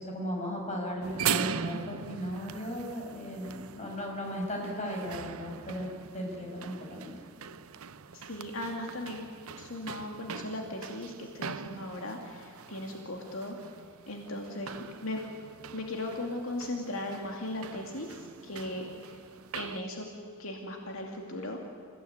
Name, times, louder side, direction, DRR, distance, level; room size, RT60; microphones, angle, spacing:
voice 1, 0.0-5.9 6.1-7.1, equal, 35° left, -1 dB, 6.5 m, -36 dB
sound 1, 1.0-19.8, right 7 dB, 85° right, 0.7 m, -41 dB
voice 2, 8.1-9.3 9.6-13.6 14.1-14.7 15.0-15.2 15.7-19.2 19.5-20.1 20.4-21.7, left 1 dB, 75° left, 1 dB, 2.5 m, -37 dB
28.0 x 17.0 x 9.5 m, 2.4 s
head